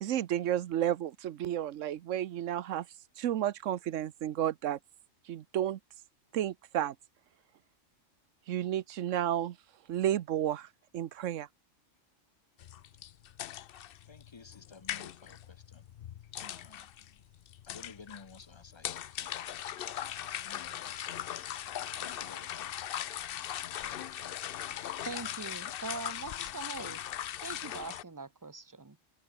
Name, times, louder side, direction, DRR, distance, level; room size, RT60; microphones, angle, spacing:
voice 1, 0.0-2.9 3.2-4.8 5.3-5.8 6.3-6.9 8.5-9.6 9.9-10.7 10.9-11.5, right 11 dB, 75° right, 1.1 m, -32 dB
sound 1, 12.6-28.0, left 11 dB, 60° left, 0.6 m, -40 dB
voice 2, 14.1-15.8 16.4-16.9 17.7-18.9 19.2-19.5 20.4-21.2 22.0-22.7 23.5-24.2, left 4 dB, 25° left, 0.8 m, -54 dB
voice 3, 25.0-27.0 27.4-29.0, right 3 dB, 15° right, 1.0 m, -42 dB
omnidirectional pair, 1.3 m